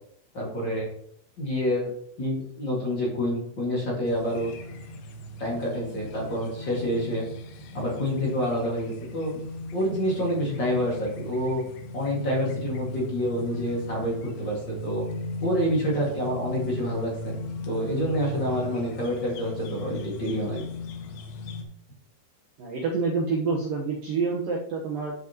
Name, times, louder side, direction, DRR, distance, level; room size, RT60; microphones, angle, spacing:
voice 1, 0.3-0.9 1.4-1.9 2.2-4.5 5.4-7.2 7.7-9.3 9.7-11.6 11.9-15.0 15.4-17.4 17.7-20.6, equal, 50° left, -4 dB, 1.3 m, -27 dB
sound 1, 4.1-21.6, left 2 dB, 75° left, 2.4 m, -38 dB
voice 2, 22.6-25.1, right 4 dB, 85° right, -2 dB, 1.9 m, -27 dB
13.0 x 6.1 x 3.0 m, 0.69 s
omnidirectional pair, 5.8 m